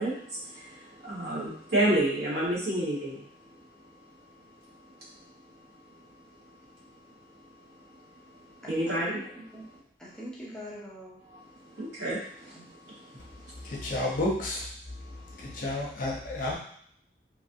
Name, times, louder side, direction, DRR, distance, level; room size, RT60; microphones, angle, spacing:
voice 1, 0.0-3.2 8.6-9.4 11.3-11.4 11.7-13.7 15.1-15.6, right 1 dB, 70° right, -7 dB, 1.4 m, -31 dB
voice 2, 8.6-9.2 9.5-9.6 10.0-11.2 12.5-12.7, equal, 5° left, -6 dB, 0.5 m, -43 dB
voice 3, 13.6-14.7 15.4-16.5, left 1 dB, 50° left, -3 dB, 0.8 m, -31 dB
3.0 x 2.6 x 2.7 m, 0.64 s
head